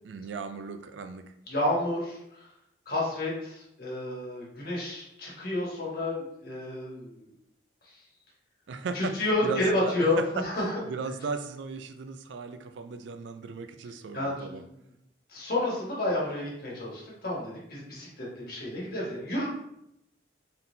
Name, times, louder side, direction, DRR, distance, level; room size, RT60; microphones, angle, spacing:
voice 1, 0.0-1.3 8.7-9.1 9.4-10.4 10.9-14.6, right 4 dB, 75° right, 9 dB, 0.4 m, -36 dB
voice 2, 1.5-2.5 2.8-7.3 7.8-8.0 8.9-10.8 14.1-14.6 15.3-19.5, left 1 dB, 50° left, -5 dB, 1.4 m, -30 dB
3.8 x 3.7 x 2.7 m, 0.81 s
head